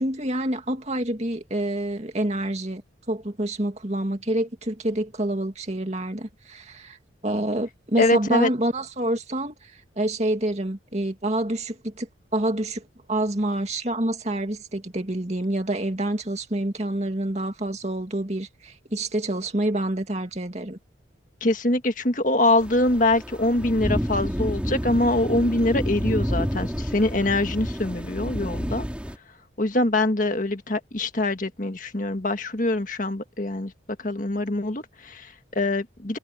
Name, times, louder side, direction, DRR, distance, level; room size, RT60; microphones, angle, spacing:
voice 1, 0.0-2.8 3.1-7.0 7.2-9.5 10.0-12.1 12.3-12.8 13.1-20.8, right 1 dB, 35° right, 2.3 m, -27 dB
voice 2, 8.0-8.5 21.4-28.8 29.6-33.7 34.0-36.2, left 2 dB, 45° left, 1.7 m, -24 dB
sound 1, 22.6-29.2, equal, 5° right, 3.7 m, -29 dB
head